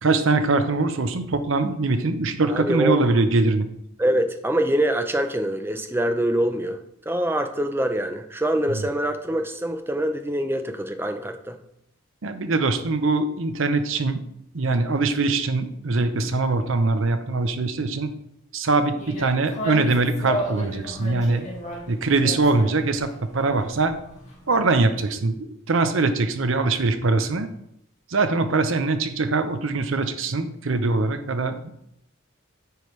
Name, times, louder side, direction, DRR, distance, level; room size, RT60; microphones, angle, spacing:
voice 1, 0.0-3.7 8.7-8.8 12.2-14.2 14.5-18.1 18.5-21.5 21.9-23.9 24.5-27.5 28.1-31.7, right 3 dB, 65° right, 9 dB, 0.7 m, -22 dB
voice 2, 2.4-3.0 4.0-6.8 7.1-11.6, right 1 dB, 10° right, 7 dB, 0.5 m, -24 dB
sound 1, 19.0-25.1, equal, 35° left, 1.9 m, -34 dB
9.2 x 5.0 x 3.2 m, 0.77 s
head